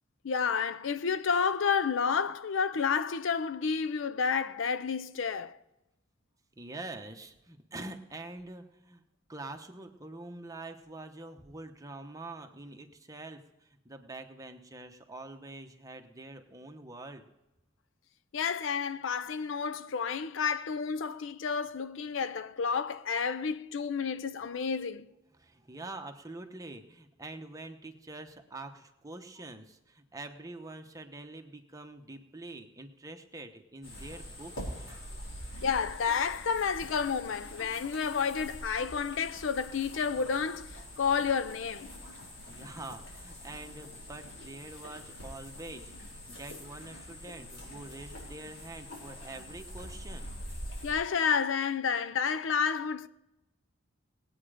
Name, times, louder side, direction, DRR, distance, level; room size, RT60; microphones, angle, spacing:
voice 1, 0.2-5.6 18.3-25.1 35.6-41.9 50.8-53.1, left 6 dB, 70° left, 0.5 m, -30 dB
voice 2, 6.6-9.0 9.3-17.3 25.4-34.7 42.5-50.3, right 2 dB, 20° right, 1.1 m, -45 dB
sound 1, 33.8-50.9, equal, 90° left, 4.5 m, -45 dB
19.5 x 8.9 x 5.0 m
head